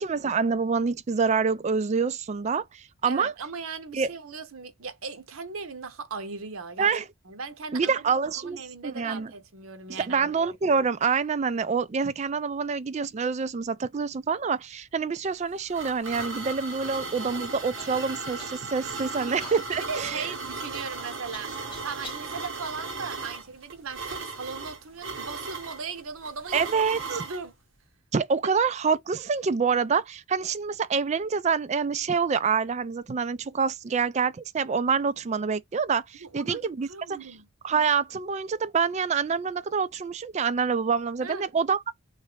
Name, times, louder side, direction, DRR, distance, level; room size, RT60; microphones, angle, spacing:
voice 1, 0.0-3.3 3.9-4.1 6.8-7.0 7.7-9.3 9.9-20.3 26.5-27.0 28.1-36.9 37.6-41.9, right 5 dB, 30° right, 0.3 m, -26 dB
voice 2, 3.0-6.9 7.3-10.3 16.8-17.4 19.0-19.3 19.7-26.7 27.1-27.5 36.2-36.6 36.9-37.5 41.2-41.5, right 5 dB, 80° right, 0.8 m, -38 dB
sound 1, 15.3-27.4, right 3 dB, 60° right, 1.1 m, -37 dB
Human voice / Cough, 17.8-18.0 18.4-18.9 19.4-22.3 23.0-23.8 24.6-24.7 25.4-25.7, left 1 dB, 25° left, 1.5 m, -46 dB
3.2 x 2.6 x 3.2 m
head